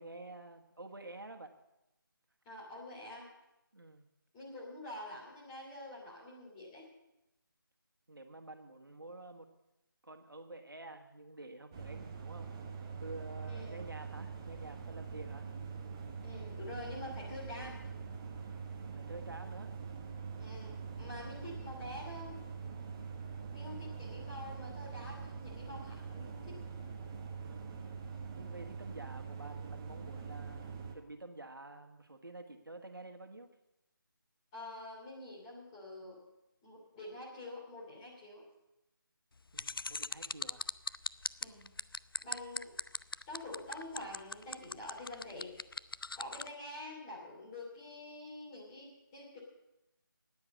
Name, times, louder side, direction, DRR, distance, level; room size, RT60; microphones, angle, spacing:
voice 1, 0.0-1.5 3.7-4.1 8.1-9.5 10.0-12.5 12.9-15.5 18.7-19.7 27.5-33.5 39.5-40.7, right 2 dB, 70° right, 5 dB, 1.5 m, -49 dB
voice 2, 2.4-3.3 4.3-6.9 13.5-13.8 16.2-17.8 20.4-22.4 23.5-26.6 34.5-36.2 36.6-38.4 41.4-41.7 42.2-42.8 43.3-45.7 46.1-49.4, left 1 dB, 15° left, -4 dB, 2.8 m, -47 dB
sound 1, 11.7-31.0, right 5 dB, 15° right, 0.7 m, -44 dB
sound 2, 39.6-46.5, left 4 dB, 75° left, 0.4 m, -38 dB
10.0 x 9.7 x 8.3 m, 0.93 s
figure-of-eight pair, 160°, 12 cm